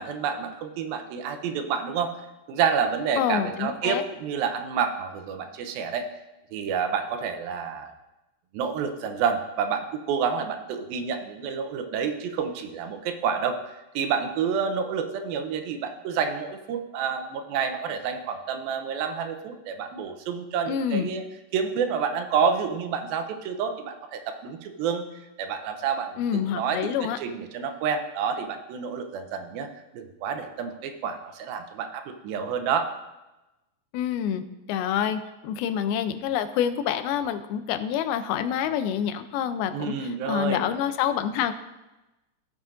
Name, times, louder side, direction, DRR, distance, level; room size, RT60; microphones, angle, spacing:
voice 1, 0.0-2.1 2.5-6.1 6.5-7.9 8.5-21.2 21.5-25.1 25.4-29.7 29.9-32.9 39.7-40.7, right 6 dB, 85° right, 6 dB, 2.5 m, -29 dB
voice 2, 3.2-4.0 20.7-21.1 26.2-27.2 33.9-34.4 34.7-41.5, left 9 dB, 85° left, 10 dB, 2.5 m, -27 dB
17.0 x 7.4 x 2.5 m, 1.0 s
omnidirectional pair, 4.3 m